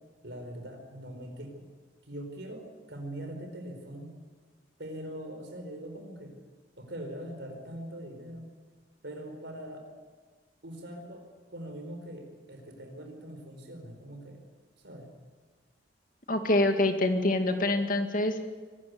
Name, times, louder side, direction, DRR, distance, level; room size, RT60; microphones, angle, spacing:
voice 1, 0.2-1.7 2.1-4.2 4.8-6.4 6.8-8.5 9.0-9.9 10.6-14.4 14.8-15.1, right 1 dB, 65° right, 4 dB, 4.6 m, -42 dB
voice 2, 16.3-18.4, left 2 dB, 50° left, 6 dB, 2.1 m, -25 dB
24.0 x 13.0 x 9.5 m, 1.5 s
head